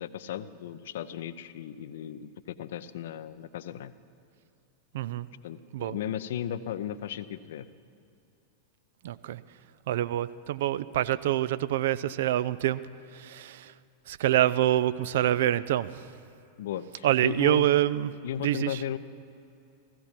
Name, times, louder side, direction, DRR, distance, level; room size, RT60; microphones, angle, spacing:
voice 1, 0.0-3.9 5.4-7.7 16.6-17.7 18.2-19.0, left 10 dB, 55° left, 14 dB, 0.6 m, -36 dB
voice 2, 4.9-5.3 5.7-6.0 9.0-9.4 9.9-12.8 13.1-13.7 14.1-16.1 17.0-18.1 18.4-18.8, right 13 dB, 55° right, 16 dB, 0.4 m, -26 dB
15.5 x 15.5 x 5.9 m, 2.7 s
figure-of-eight pair, 90°, 0 cm